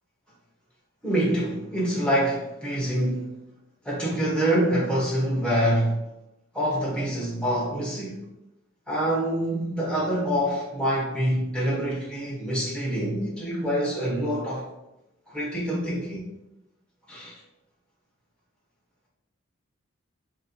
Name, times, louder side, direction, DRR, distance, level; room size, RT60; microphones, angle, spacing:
voice 1, 1.0-3.3 3.8-6.0 6.5-8.2 8.9-14.6 15.3-16.2 17.1-17.4, right 1 dB, 5° left, -6 dB, 0.8 m, -26 dB
3.0 x 2.7 x 4.3 m, 0.90 s
head